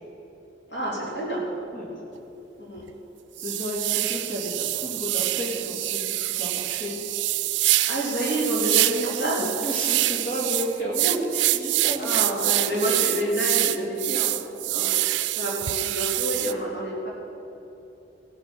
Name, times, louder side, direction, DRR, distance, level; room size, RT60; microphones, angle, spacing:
voice 1, 0.7-1.5 2.6-2.8 7.9-9.4 12.0-14.9 15.4-17.1, right 1 dB, 70° left, -5 dB, 3.6 m, -28 dB
sound 1, 2.2-2.3 2.8-2.9 3.4-16.5, right 16 dB, 85° right, 0.4 m, -26 dB
voice 2, 3.4-7.0 9.4-12.5, equal, 50° left, -3 dB, 2.9 m, -32 dB
16.0 x 8.3 x 6.2 m, 2.9 s
head